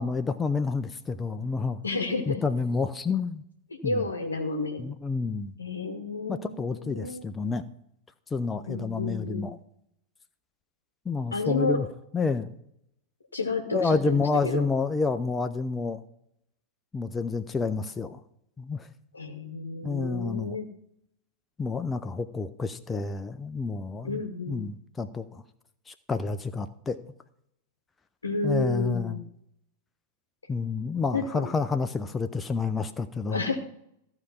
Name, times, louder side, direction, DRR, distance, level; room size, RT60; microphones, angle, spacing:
voice 1, 0.0-1.8 2.3-3.4 3.8-4.0 4.8-5.5 6.3-7.6 8.3-9.6 11.1-11.9 12.1-12.5 13.7-16.0 16.9-18.2 18.6-18.9 19.8-20.6 21.6-24.2 24.5-25.4 25.9-27.0 28.4-29.2 30.5-33.4, left 4 dB, 15° left, 9 dB, 0.5 m, -29 dB
voice 2, 1.8-2.4 3.7-4.8 5.6-7.3 8.7-9.5 11.3-11.8 13.3-14.7 19.1-20.7 24.0-24.7 28.2-29.2 31.1-31.5 33.3-33.5, left 3 dB, 75° left, 4 dB, 0.9 m, -31 dB
14.5 x 4.9 x 5.6 m, 0.76 s
figure-of-eight pair, 90°, 0 cm